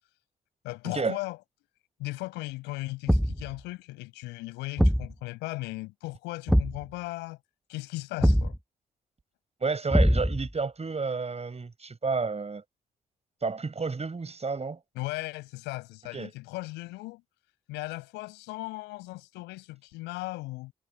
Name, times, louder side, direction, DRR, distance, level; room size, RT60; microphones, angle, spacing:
voice 1, 0.6-1.4 2.0-7.4 7.7-8.6 15.0-17.2 17.7-20.7, left 21 dB, 85° left, 7.0 m, -37 dB
Thump thud, 3.1-3.5 4.8-5.1 6.5-6.8 8.2-8.6 9.9-10.5, equal, ahead, 0.7 m, -22 dB
voice 2, 9.6-12.6 13.4-14.8 16.1-16.3, right 4 dB, 35° right, 5.3 m, -31 dB
hypercardioid pair, 40°, 18 cm